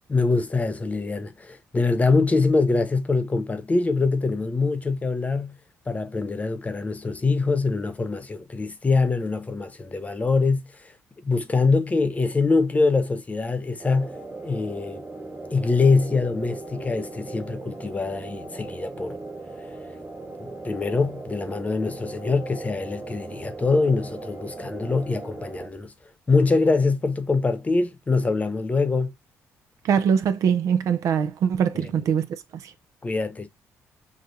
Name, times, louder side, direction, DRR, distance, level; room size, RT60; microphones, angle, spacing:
voice 1, 0.1-5.6 5.9-10.7 11.2-14.2 14.4-15.0 15.5-19.2 20.4-25.9 26.3-29.1 31.8-31.9 33.0-33.5, left 3 dB, 25° left, 1.0 m, -24 dB
sound 1, 13.8-25.7, right 3 dB, 35° right, 1.7 m, -38 dB
voice 2, 29.8-32.3 32.6-32.7, right 7 dB, 70° right, 0.7 m, -22 dB
6.3 x 2.4 x 2.6 m
cardioid pair, 80°, 6 cm